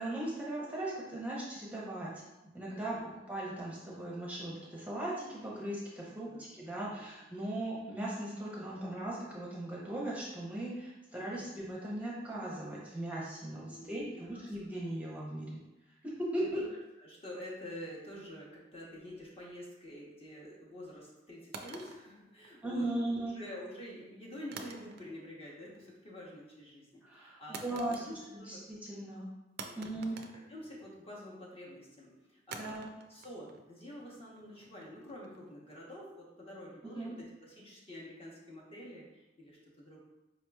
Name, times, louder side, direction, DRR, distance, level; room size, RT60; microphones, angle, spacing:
voice 1, 0.0-2.1 2.5-15.5 16.0-16.6 22.6-23.3 27.0-28.0 28.3-29.3 29.8-30.2 32.5-32.9 36.8-37.1, right 1 dB, 10° right, -6 dB, 0.6 m, -38 dB
voice 2, 17.0-22.9 23.3-28.6 29.6-30.0 30.3-32.8 33.1-40.0, left 1 dB, 30° left, -4 dB, 0.8 m, -48 dB
sound 1, 21.5-22.9 24.5-25.4 25.7-26.1 27.5-28.5 28.8-28.9 29.6-31.1 32.5-35.5, right 5 dB, 60° right, 0.3 m, -49 dB
4.8 x 2.8 x 2.2 m, 1.0 s
head